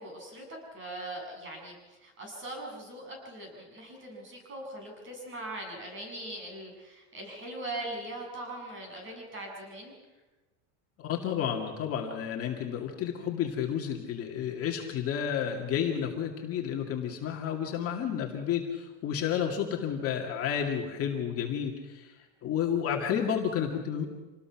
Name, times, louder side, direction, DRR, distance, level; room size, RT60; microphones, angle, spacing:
voice 1, 0.0-9.9, right 1 dB, 30° right, 1 dB, 7.9 m, -41 dB
voice 2, 11.0-24.1, left 8 dB, 35° left, 1 dB, 2.3 m, -31 dB
27.0 x 19.5 x 6.0 m, 1.2 s
supercardioid pair, 160°, 41 cm